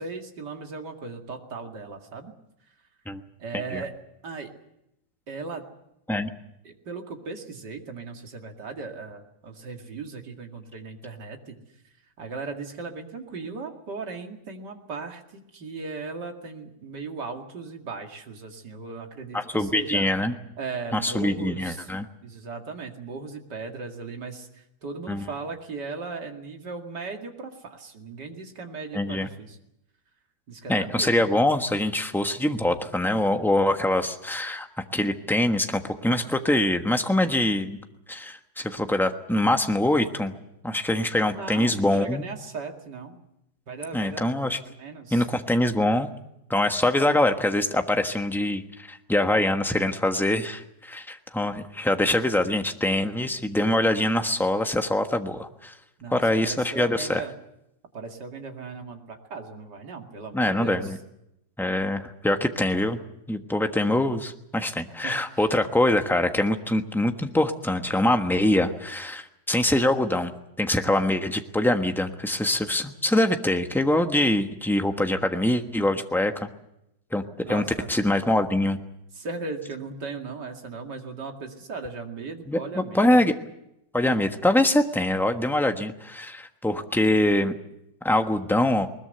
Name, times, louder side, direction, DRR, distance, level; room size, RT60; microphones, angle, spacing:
voice 1, 0.0-2.3 3.4-3.9 4.2-4.5 5.3-5.7 6.6-11.6 12.2-20.1 20.6-21.9 22.2-29.6 30.5-31.2 41.3-43.2 43.7-44.3 44.7-45.3 56.0-57.3 57.9-61.0 65.0-65.4 77.4-77.9 79.1-83.2, right 4 dB, 60° right, 3 dB, 2.9 m, -37 dB
voice 2, 19.3-20.3 20.9-22.1 25.1-25.2 28.9-29.3 30.7-34.7 34.9-37.8 38.1-40.3 40.6-42.2 43.9-44.6 45.1-46.1 46.5-55.7 56.1-57.2 60.3-61.0 61.6-63.0 63.3-70.3 70.6-76.5 77.1-77.2 77.5-77.6 77.9-78.8 82.5-83.3 83.9-87.5 88.0-88.9, left 1 dB, ahead, 6 dB, 1.0 m, -24 dB
21.0 x 20.5 x 8.0 m, 0.83 s
omnidirectional pair, 2.0 m